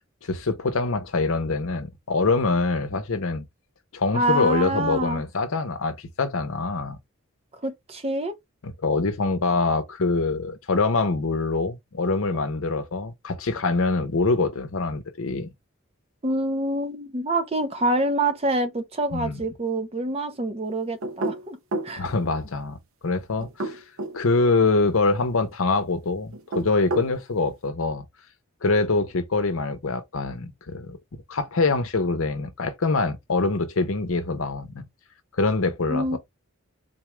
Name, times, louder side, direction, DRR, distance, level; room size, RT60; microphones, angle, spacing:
voice 1, 0.2-3.4 3.9-7.0 8.6-15.5 19.1-19.4 22.0-22.8 23.0-23.8 24.1-28.0 28.6-31.0 31.3-34.8 35.4-36.2, left 3 dB, 70° left, 0.7 m, -24 dB
voice 2, 4.1-5.2 7.6-8.4 16.2-21.6 21.8-22.0 35.9-36.2, right 1 dB, 30° right, 0.6 m, -26 dB
sound 1, 21.0-22.0 23.4-24.2 26.3-27.1, right 2 dB, 70° right, 0.7 m, -30 dB
4.1 x 2.4 x 3.0 m
head